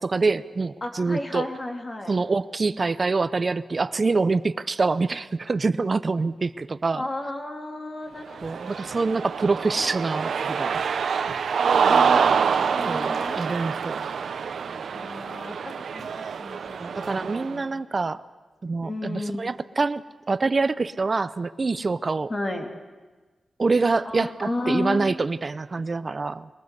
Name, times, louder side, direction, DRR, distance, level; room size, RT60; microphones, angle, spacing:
voice 1, 0.0-1.5 2.1-7.0 8.4-10.8 12.9-14.1 16.8-18.2 18.6-22.3 23.6-26.5, right 3 dB, 35° right, 15 dB, 0.6 m, -25 dB
voice 2, 0.8-2.1 6.9-9.0 11.9-13.5 14.9-17.7 18.8-19.5 22.3-22.7 24.1-25.2, left 2 dB, 30° left, 4 dB, 2.6 m, -33 dB
Cheering, 8.3-17.5, right 6 dB, 80° right, 0.9 m, -26 dB
22.5 x 19.0 x 8.1 m, 1.3 s
wide cardioid pair, 125°, 0 cm